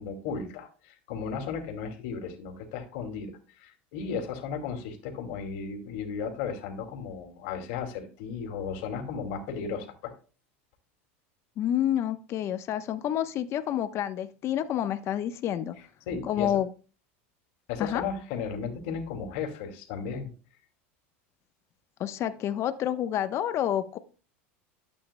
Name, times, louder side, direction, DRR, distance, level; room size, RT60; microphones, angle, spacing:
voice 1, 0.0-3.3 3.6-10.1 16.1-16.6 17.7-20.3, left 6 dB, 65° left, 4 dB, 2.3 m, -35 dB
voice 2, 11.6-15.8 16.2-16.7 17.8-18.0 22.0-24.0, left 10 dB, 40° left, 11 dB, 0.9 m, -29 dB
12.5 x 8.5 x 2.2 m, 0.36 s
supercardioid pair, 115°, 7 cm